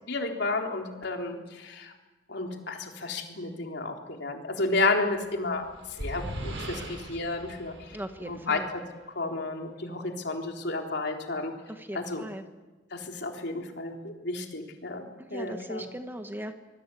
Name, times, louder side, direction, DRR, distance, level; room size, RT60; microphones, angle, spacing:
voice 1, 0.1-1.9 2.3-7.7 8.2-8.8 9.2-11.5 11.9-12.2 12.9-15.1 15.3-15.8, left 3 dB, 60° left, 2 dB, 3.8 m, -32 dB
sound 1, 5.2-8.8, right 1 dB, 75° right, 7.5 m, -39 dB
voice 2, 7.9-8.7 11.7-12.4 15.2-16.5, right 1 dB, 10° right, 7 dB, 1.3 m, -38 dB
26.0 x 21.0 x 8.5 m, 1.2 s
head